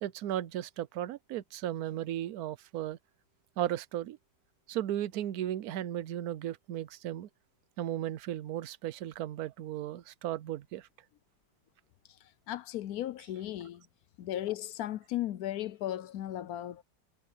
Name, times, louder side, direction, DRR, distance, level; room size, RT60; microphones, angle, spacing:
voice 1, 0.0-3.0 3.6-4.2 4.7-7.3 7.8-10.9, right 12 dB, 70° right, 1.1 m, -35 dB
voice 2, 12.2-13.8 14.2-16.8, left 13 dB, 70° left, 1.0 m, -36 dB
omnidirectional pair, 1.8 m